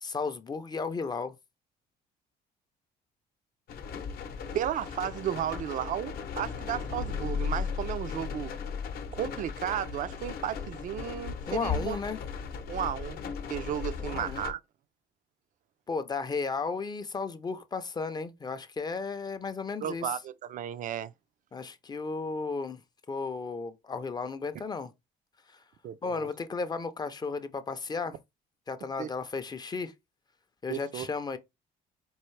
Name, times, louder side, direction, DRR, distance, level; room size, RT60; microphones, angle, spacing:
voice 1, 0.0-1.3 11.5-12.2 14.0-14.4 15.9-20.1 21.5-22.8 23.1-24.9 26.0-28.2 28.7-29.9 30.6-31.4, left 4 dB, 25° left, 0.5 m, -34 dB
sound 1, 3.7-14.5, left 6 dB, 65° left, 0.7 m, -36 dB
voice 2, 4.5-8.5 9.1-12.0 12.7-13.2 13.5-14.6 19.8-21.1 25.8-26.3 29.0-29.1 30.7-31.1, right 10 dB, 50° right, 0.4 m, -34 dB
4.5 x 2.4 x 3.2 m
cardioid pair, 110°, 17 cm